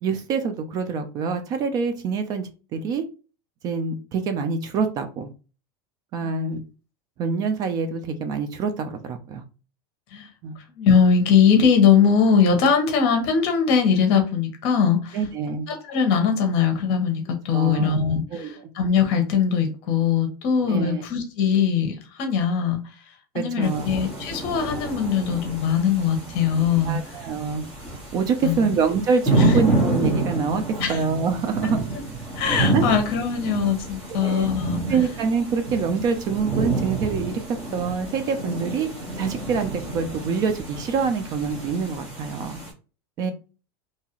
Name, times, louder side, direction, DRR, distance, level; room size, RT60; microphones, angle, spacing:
voice 1, 0.0-3.0 3.6-5.3 6.1-6.6 7.2-9.4 10.4-10.6 15.1-15.7 17.5-17.9 18.3-18.5 20.7-21.1 23.3-23.9 26.8-27.6 27.9-31.8 32.7-32.9 34.2-34.5 34.9-38.9 39.2-42.6 43.2-43.3, right 5 dB, 30° right, 8 dB, 0.3 m, -25 dB
voice 2, 10.7-15.2 15.7-22.8 23.3-27.2 28.4-28.7 29.3-29.5 30.8-31.0 31.6-31.7 32.3-34.8, left 6 dB, 50° left, 5 dB, 0.9 m, -21 dB
sound 1, 23.6-42.7, right 2 dB, 10° right, 1.2 m, -29 dB
2.7 x 2.3 x 2.9 m, 0.34 s
supercardioid pair, 155°, 13 cm